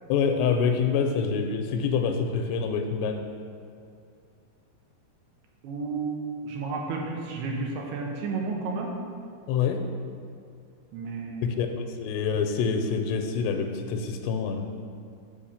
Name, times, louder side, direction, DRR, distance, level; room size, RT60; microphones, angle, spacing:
voice 1, 0.1-3.2 9.5-9.8 11.6-14.6, left 6 dB, 85° left, 5 dB, 2.7 m, -26 dB
voice 2, 5.6-6.2 6.4-8.9 10.9-11.6, right 4 dB, 80° right, 0 dB, 3.0 m, -32 dB
7.0 x 5.2 x 7.1 m, 2.4 s
omnidirectional pair, 4.8 m